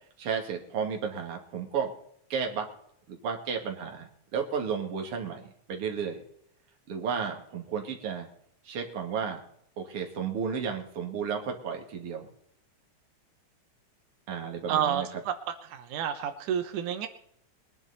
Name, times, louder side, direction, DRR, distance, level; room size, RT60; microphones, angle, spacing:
voice 1, 0.2-1.9 2.3-2.7 3.1-5.4 5.7-6.2 6.9-8.3 8.6-9.4 9.8-12.3 14.3-15.2, right 6 dB, 50° right, 2 dB, 2.9 m, -33 dB
voice 2, 14.7-15.3 15.6-17.1, right 9 dB, 90° right, 7 dB, 2.6 m, -30 dB
22.5 x 10.5 x 4.2 m, 0.69 s
omnidirectional pair, 3.4 m